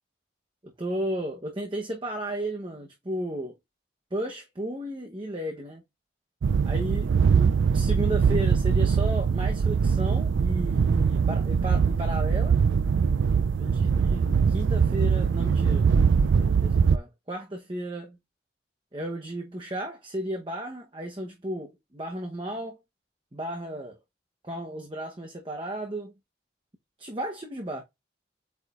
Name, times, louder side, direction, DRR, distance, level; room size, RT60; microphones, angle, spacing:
voice 1, 0.8-3.5 4.1-5.8 6.7-12.6 13.6-15.9 16.3-18.2 18.9-22.8 23.3-24.0 24.4-26.1 27.0-27.8, right 1 dB, 25° right, 0.9 m, -34 dB
sound 1, 6.4-17.0, right 6 dB, 85° right, 0.4 m, -22 dB
8.1 x 4.7 x 2.5 m
head